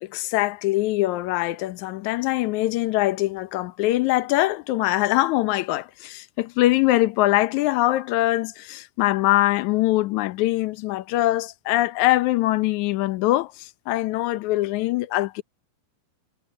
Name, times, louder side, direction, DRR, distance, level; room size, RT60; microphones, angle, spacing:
voice 1, 0.0-15.4, left 17 dB, 75° left, 1.8 m, -23 dB
omnidirectional pair, 4.4 m